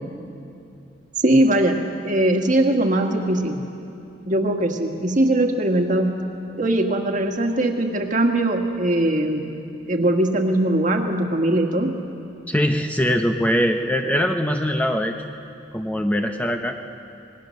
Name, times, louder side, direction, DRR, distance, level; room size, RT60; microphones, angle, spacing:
voice 1, 1.2-3.6 4.3-6.1 6.6-9.5 9.9-11.9, right 1 dB, 45° right, 3 dB, 1.7 m, -20 dB
voice 2, 12.5-15.1 15.7-16.8, equal, 10° left, 4 dB, 0.7 m, -22 dB
25.5 x 20.0 x 6.5 m, 2.7 s
head